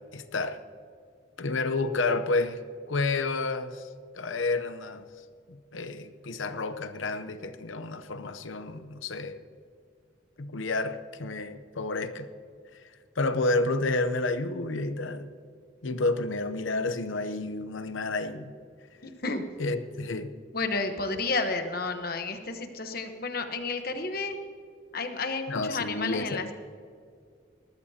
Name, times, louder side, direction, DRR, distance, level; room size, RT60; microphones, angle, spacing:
voice 1, 0.1-0.6 1.4-2.6 2.9-3.9 4.1-5.1 5.5-9.4 10.4-12.3 13.2-15.3 15.8-18.5 19.6-20.3 25.5-26.5, left 3 dB, 80° left, 10 dB, 0.8 m, -30 dB
voice 2, 19.0-19.4 20.5-24.4 24.9-26.5, left 3 dB, 50° left, 7 dB, 1.1 m, -31 dB
20.0 x 13.5 x 2.8 m, 2.3 s
head